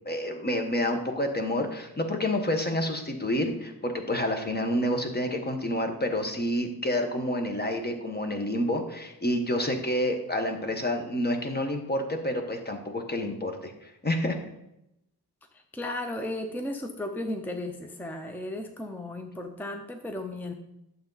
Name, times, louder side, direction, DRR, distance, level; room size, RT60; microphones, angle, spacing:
voice 1, 0.0-14.4, left 1 dB, 25° left, 5 dB, 1.1 m, -29 dB
voice 2, 15.5-20.5, left 1 dB, 5° left, 5 dB, 0.6 m, -35 dB
11.5 x 6.9 x 3.9 m, 0.85 s
wide cardioid pair, 175°, 38 cm